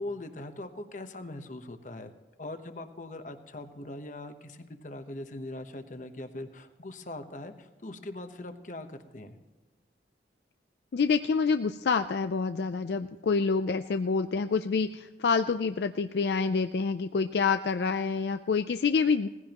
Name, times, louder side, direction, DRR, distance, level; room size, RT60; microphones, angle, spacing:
voice 1, 0.0-2.1 2.4-9.4, left 2 dB, 45° left, 8 dB, 1.0 m, -41 dB
voice 2, 10.9-19.3, left 5 dB, 70° left, 9 dB, 0.4 m, -27 dB
18.5 x 15.5 x 3.0 m, 1.2 s
head